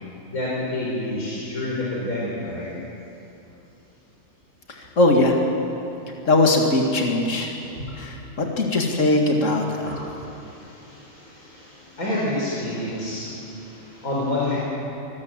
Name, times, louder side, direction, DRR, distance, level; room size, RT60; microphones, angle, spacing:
voice 1, 0.3-2.7 7.6-8.0 9.8-14.6, left 1 dB, 85° left, -6 dB, 5.2 m, -29 dB
voice 2, 4.7-5.3 6.3-7.5 8.0-9.9, left 2 dB, 60° left, 1 dB, 2.5 m, -20 dB
25.0 x 18.5 x 7.7 m, 2.8 s
omnidirectional pair, 1.5 m